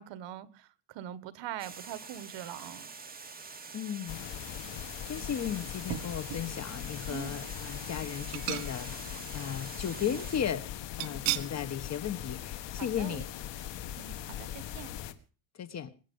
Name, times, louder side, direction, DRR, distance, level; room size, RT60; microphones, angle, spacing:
voice 1, 0.0-2.9 7.1-7.4 12.8-13.2 14.0-14.9, right 11 dB, 65° right, 1.5 m, -43 dB
Water, 1.6-10.4, right 4 dB, 20° right, 2.2 m, -46 dB
voice 2, 3.7-4.3 5.0-10.7 11.0-13.3 15.6-15.9, left 9 dB, 35° left, 1.2 m, -35 dB
sound 1, 4.1-15.1, left 11 dB, 60° left, 1.8 m, -40 dB
sound 2, 5.9-6.5 7.0-7.1 8.3-9.1 9.4-9.5 11.0-11.6 12.0-12.2 12.5-12.6, right 16 dB, 85° right, 1.5 m, -36 dB
22.5 x 10.0 x 5.4 m
cardioid pair, 145°, 48 cm